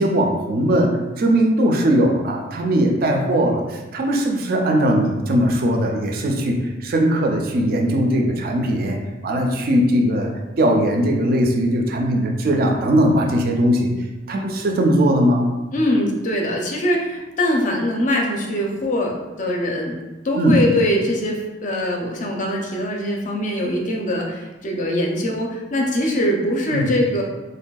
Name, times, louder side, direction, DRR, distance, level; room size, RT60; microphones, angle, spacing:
voice 1, 0.0-9.0 9.2-10.3 10.6-13.9 14.3-15.5 20.3-20.6 26.7-26.9, equal, 50° right, 1 dB, 0.4 m, -19 dB
voice 2, 15.7-20.0 20.2-27.2, left 1 dB, 40° left, 0 dB, 0.5 m, -22 dB
3.4 x 2.5 x 2.2 m, 1.1 s
head